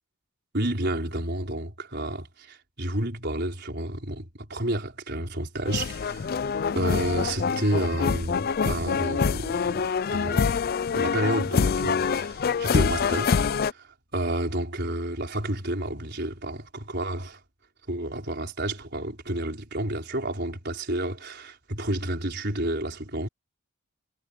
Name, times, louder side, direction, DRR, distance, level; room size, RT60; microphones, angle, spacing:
voice 1, 0.5-6.3 6.8-10.5 10.9-17.4 17.9-23.3, right 1 dB, 50° right, 5.3 m, -30 dB
sound 1, 5.7-13.7, left 6 dB, 45° left, 0.3 m, -25 dB
head